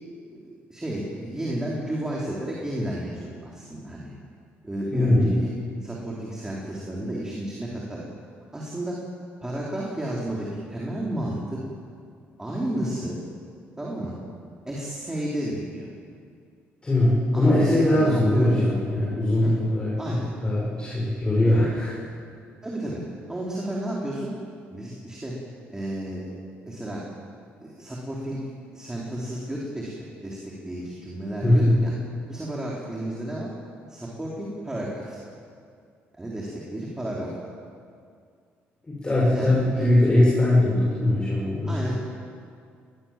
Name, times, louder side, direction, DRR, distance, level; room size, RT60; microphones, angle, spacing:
voice 1, 0.2-4.1 4.6-5.5 5.8-8.0 8.5-9.0 9.4-11.6 12.4-13.2 13.8-14.1 14.7-15.9 17.3-18.6 19.4-19.5 20.0-20.3 21.4-21.7 22.6-23.0 23.3-24.3 24.7-25.3 25.7-26.3 26.6-27.0 27.6-28.5 28.7-31.9 32.3-33.5 33.9-35.2 36.1-37.5 39.3-39.9 41.7-41.9, right 1 dB, 15° right, -4 dB, 4.4 m, -32 dB
voice 2, 4.9-5.3 16.8-22.0 31.4-31.8 38.8-41.8, left 1 dB, 20° left, -7 dB, 7.1 m, -21 dB
21.5 x 20.0 x 7.7 m, 2.3 s
cardioid pair, 95°, 5 cm